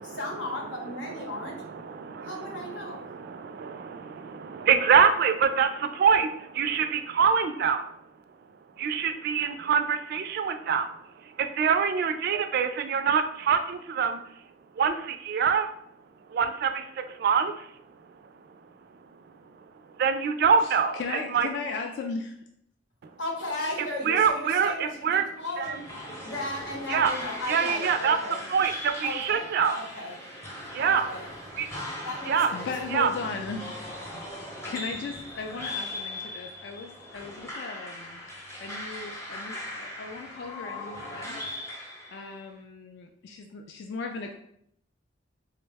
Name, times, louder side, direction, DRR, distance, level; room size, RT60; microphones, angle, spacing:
voice 1, 0.0-1.6 2.2-3.0 23.2-25.8 26.2-28.4 29.0-29.5 29.7-30.1 30.8-31.2 32.0-32.7, left 2 dB, 90° left, -1 dB, 0.9 m, -35 dB
voice 2, 1.0-7.8 8.8-10.9 11.4-14.2 14.8-15.7 16.3-17.7 20.0-21.0 21.3-21.5 24.0-25.3 25.6-25.8 26.9-27.1 27.5-28.2 28.5-29.8 30.7-31.1 31.6-31.7 32.3-32.5 32.9-33.1 34.1-34.2, right 6 dB, 55° right, 8 dB, 0.3 m, -25 dB
voice 3, 20.6-22.5 32.5-33.8 34.6-38.3 38.6-44.3, left 4 dB, 65° left, 3 dB, 0.3 m, -37 dB
sound 1, 25.6-42.4, left 1 dB, 15° left, 0.6 m, -39 dB
3.8 x 2.1 x 3.3 m, 0.70 s
head